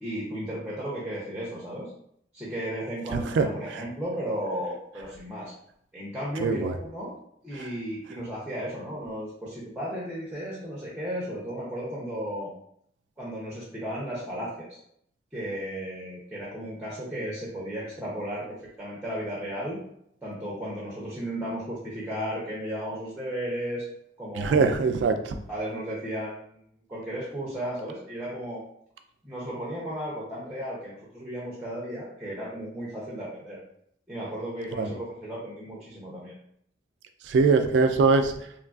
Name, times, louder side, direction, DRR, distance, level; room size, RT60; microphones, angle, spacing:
voice 1, 0.0-1.9 2.3-5.5 5.9-7.1 7.4-12.5 13.2-14.8 15.3-18.5 18.8-19.8 20.2-23.8 24.2-24.7 25.5-26.6 26.9-28.6 29.2-33.6 34.1-36.3, equal, 10° right, -5 dB, 0.6 m, -34 dB
voice 2, 3.1-3.4 6.4-6.7 24.4-25.4 34.8-34.9 37.3-38.3, right 4 dB, 70° right, 7 dB, 0.3 m, -22 dB
3.0 x 2.4 x 2.3 m, 0.68 s
head